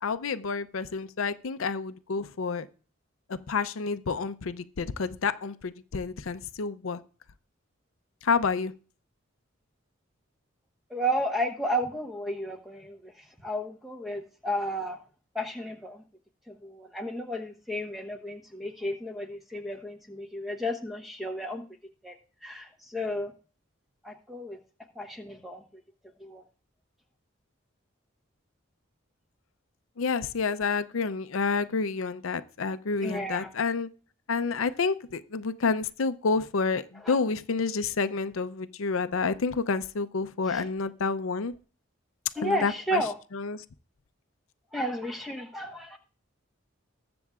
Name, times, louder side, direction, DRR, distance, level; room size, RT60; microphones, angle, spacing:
voice 1, 0.0-2.7 3.3-7.0 8.2-8.7 30.0-33.9 34.3-41.5 42.4-43.0 43.3-43.6, left 4 dB, 85° left, 11 dB, 0.6 m, -29 dB
voice 2, 10.9-13.1 13.4-15.0 15.3-16.0 16.5-21.6 22.0-22.1 22.4-23.3 24.0-24.6 24.9-25.6 26.2-26.4 33.0-33.5 37.0-37.2 40.5-40.6 42.3-43.1 44.7-46.0, equal, ahead, 4 dB, 1.1 m, -32 dB
20.5 x 6.9 x 2.4 m, 0.39 s
head